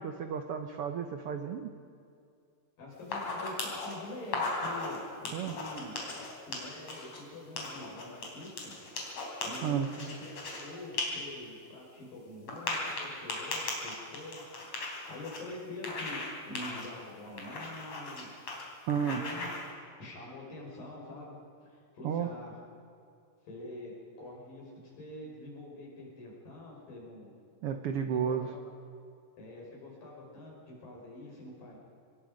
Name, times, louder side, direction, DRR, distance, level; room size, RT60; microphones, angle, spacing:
voice 1, 0.0-1.7 5.3-5.5 9.6-9.9 18.9-19.2 22.0-22.3 27.6-28.5, right 8 dB, 90° right, 7 dB, 1.2 m, -32 dB
voice 2, 2.8-5.9 6.5-8.7 9.4-16.2 16.5-18.3 18.9-19.5 20.0-22.5 23.4-27.3 28.1-28.6 29.4-31.8, left 1 dB, 80° left, -2 dB, 7.2 m, -45 dB
sound 1, 3.0-3.9 4.2-5.0 5.3-7.2 7.6-10.6 10.9-11.0 11.4-11.5 12.5-15.4 15.8-16.3 16.6-16.9 17.4-18.2 18.5-18.6 18.9-19.6, left 3 dB, 50° left, 4.8 m, -37 dB
25.5 x 20.5 x 5.2 m, 2.5 s
omnidirectional pair, 3.9 m